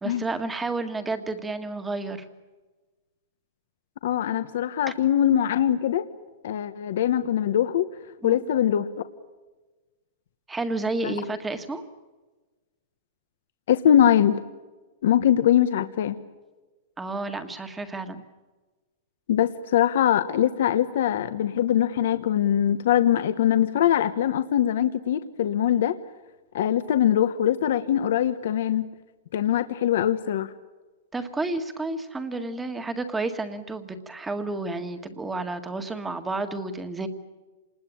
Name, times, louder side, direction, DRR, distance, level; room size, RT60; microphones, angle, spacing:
voice 1, 0.0-2.3 8.2-8.5 10.5-11.9 17.0-18.2 31.1-37.1, right 3 dB, 10° right, 8 dB, 1.7 m, -31 dB
voice 2, 4.0-6.0 6.4-7.9 8.2-8.9 11.0-11.1 13.7-14.4 15.0-16.2 19.3-26.0 26.5-28.9 29.3-30.5, left 10 dB, 65° left, 10 dB, 1.2 m, -22 dB
27.5 x 20.5 x 8.7 m, 1.2 s
supercardioid pair, 160°, 0 cm